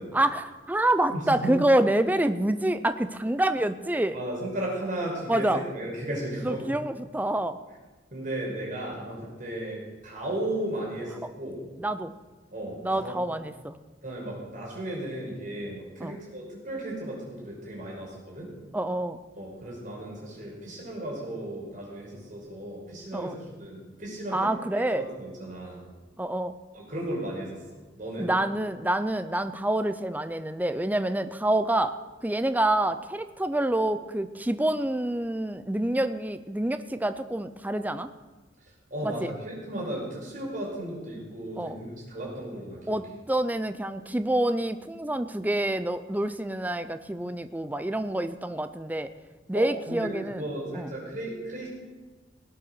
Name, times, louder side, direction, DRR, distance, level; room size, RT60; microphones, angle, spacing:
voice 1, 0.1-4.2 5.3-5.6 6.4-7.6 11.8-12.1 12.8-13.7 16.0-16.2 18.7-19.2 23.1-23.4 24.3-25.0 26.2-26.5 28.2-31.9 32.2-38.1 39.0-39.3 41.6-41.8 42.9-49.1 49.5-50.4 50.7-50.9, right 1 dB, 10° right, 11 dB, 0.5 m, -27 dB
voice 2, 1.1-1.5 4.1-6.7 8.1-11.6 12.5-13.2 14.0-18.5 19.3-24.5 24.9-25.8 26.7-27.6 28.0-28.3 38.9-43.0 49.5-51.7, right 1 dB, 45° right, -3 dB, 5.6 m, -35 dB
18.0 x 8.8 x 6.5 m, 1.3 s
head